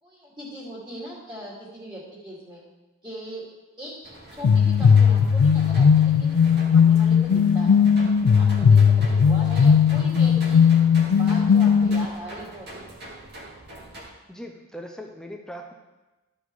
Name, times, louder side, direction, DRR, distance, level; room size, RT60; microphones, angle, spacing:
voice 1, 0.0-2.6 3.0-3.5 3.8-6.3 6.7-7.8 8.4-10.6 11.1-12.8, equal, 20° right, -6 dB, 2.5 m, -40 dB
sound 1, 4.0-14.0, right 1 dB, 45° right, 2.3 m, -43 dB
sound 2, 4.4-12.1, left 6 dB, 80° left, 0.4 m, -17 dB
voice 2, 14.3-15.7, equal, 5° left, 3 dB, 0.5 m, -39 dB
13.0 x 5.4 x 4.7 m, 1.1 s
head